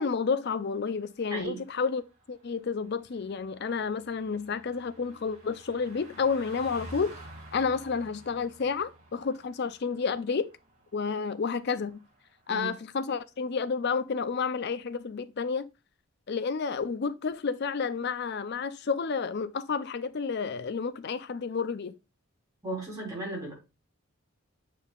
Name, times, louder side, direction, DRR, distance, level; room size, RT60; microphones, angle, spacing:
voice 1, 0.0-2.0 2.3-7.2 7.5-10.5 10.9-12.0 12.5-15.7 16.3-21.9, left 5 dB, 45° left, 0.4 m, -30 dB
Car passing by, 0.7-12.6 12.9-13.1, right 1 dB, 30° right, 2.3 m, -51 dB
voice 2, 1.3-1.6 12.5-12.7 22.6-23.5, right 2 dB, 15° right, 3.5 m, -35 dB
8.3 x 5.4 x 2.4 m
head